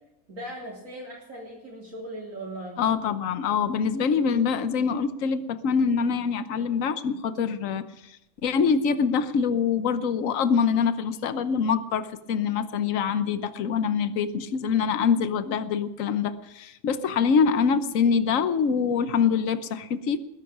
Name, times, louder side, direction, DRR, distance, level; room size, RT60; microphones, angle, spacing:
voice 1, 0.3-2.8, right 1 dB, 60° right, -4 dB, 3.9 m, -38 dB
voice 2, 2.8-8.2 8.4-20.2, left 6 dB, 65° left, 12 dB, 1.3 m, -24 dB
20.0 x 11.0 x 6.0 m, 0.87 s
omnidirectional pair, 1.5 m